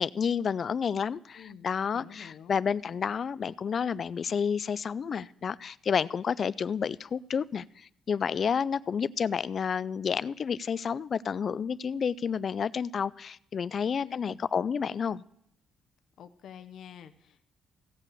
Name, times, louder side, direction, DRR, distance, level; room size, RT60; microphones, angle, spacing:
voice 1, 0.0-15.2, left 6 dB, 50° left, 0.4 m, -30 dB
voice 2, 1.3-2.6 14.0-14.4 16.2-17.5, left 8 dB, 70° left, 0.8 m, -48 dB
16.5 x 5.7 x 6.9 m
cardioid pair, 90°, 0 cm